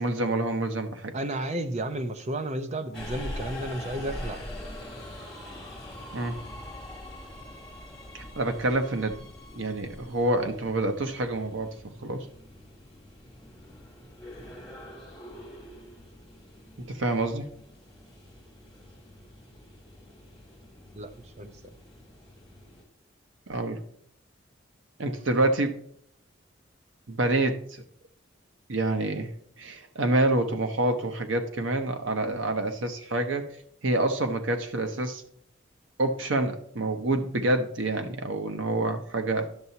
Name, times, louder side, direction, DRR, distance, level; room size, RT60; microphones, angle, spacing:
voice 1, 0.0-1.1 6.1-6.4 8.1-9.3 9.5-11.7 12.0-12.3 16.8-17.5 23.5-23.8 25.0-25.7 27.1-27.8 28.7-29.3 29.6-33.4 33.8-35.2 36.0-39.5, right 2 dB, 75° right, 7 dB, 0.9 m, -27 dB
voice 2, 1.1-4.4 21.0-21.1 21.4-21.7, right 1 dB, 35° right, 9 dB, 0.6 m, -32 dB
Subway metro underground, 2.9-22.8, left 1 dB, 5° left, 2.3 m, -44 dB
10.5 x 6.8 x 2.8 m, 0.65 s
head